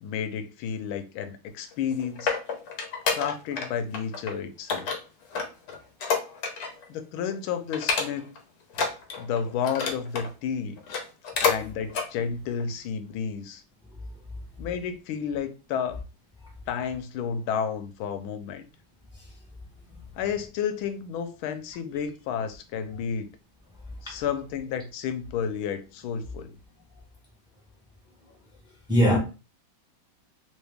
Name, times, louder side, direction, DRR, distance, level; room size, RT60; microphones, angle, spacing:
voice 1, 0.0-2.4 3.1-4.9 6.9-8.3 9.2-10.8 11.4-13.6 14.6-16.0 16.7-18.7 20.2-23.3 24.0-26.6, left 7 dB, 85° left, 1.4 m, -31 dB
sound 1, 1.7-3.7 3.9-4.3 4.7-6.8 7.2-7.3 7.7-8.4 8.7-10.3 10.8-11.6 11.9-12.1 12.6-12.7, left 5 dB, 60° left, 1.1 m, -29 dB
voice 2, 19.2-19.3 24.1-24.2 28.9-29.2, equal, 5° right, 1.0 m, -21 dB
3.2 x 3.1 x 3.3 m
omnidirectional pair, 2.2 m